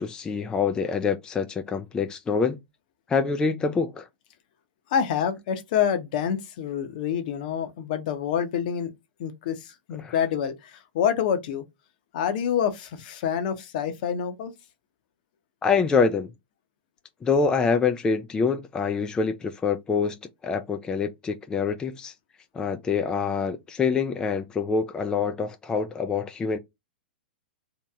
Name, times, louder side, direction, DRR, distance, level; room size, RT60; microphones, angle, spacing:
voice 1, 0.0-2.6 3.1-4.1 10.0-10.1 15.6-16.3 17.2-20.2 20.4-22.1 22.5-26.6, left 5 dB, 15° left, 0.3 m, -25 dB
voice 2, 4.9-8.9 9.2-11.6 12.1-14.5, left 8 dB, 55° left, 0.7 m, -27 dB
2.8 x 2.7 x 2.3 m
hypercardioid pair, 115°, 5 cm